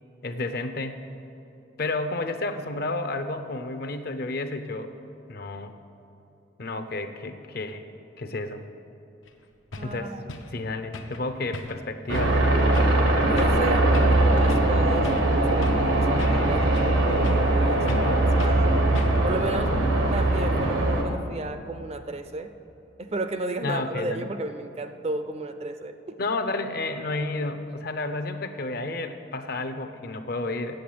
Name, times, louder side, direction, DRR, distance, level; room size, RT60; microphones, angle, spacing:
voice 1, 0.2-1.0 1.8-4.9 5.3-5.7 6.6-7.9 8.2-8.6 9.8-10.1 10.5-12.4 23.6-24.3 26.2-30.8, left 2 dB, 50° left, 8 dB, 0.6 m, -31 dB
sound 1, 9.3-9.4 9.7-9.9 10.3-10.5 10.9-11.2 11.5-11.9 12.1-12.4 12.7-13.0 13.4-13.6 13.9-14.2 14.5-14.7 15.0-15.9 16.2-17.0 17.2-17.5 17.9-18.1 18.4-18.6 18.9-19.3, left 2 dB, 85° left, 0.8 m, -38 dB
voice 2, 9.8-10.3 13.3-18.7 19.2-19.7 20.1-22.5 23.0-26.2, right 2 dB, 35° right, 9 dB, 0.5 m, -33 dB
sound 2, 12.1-21.0, right 2 dB, 80° right, 1.2 m, -21 dB
7.9 x 7.8 x 8.6 m, 2.8 s
head